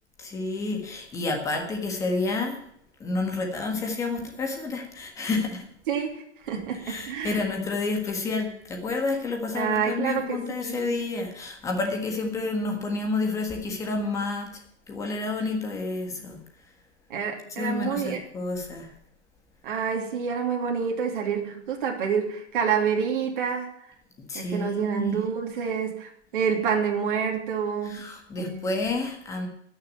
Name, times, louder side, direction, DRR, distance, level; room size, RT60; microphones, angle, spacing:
voice 1, 0.2-2.6 3.0-5.6 6.8-14.5 14.9-16.4 17.6-18.9 24.3-25.2 27.8-29.5, left 3 dB, 10° left, 2 dB, 1.6 m, -29 dB
voice 2, 5.9-7.4 9.5-11.0 17.1-18.2 19.6-23.7 24.3-28.1 28.4-28.7, right 7 dB, 45° right, 0 dB, 2.8 m, -28 dB
13.0 x 6.7 x 9.5 m, 0.72 s
hypercardioid pair, 165°, 35 cm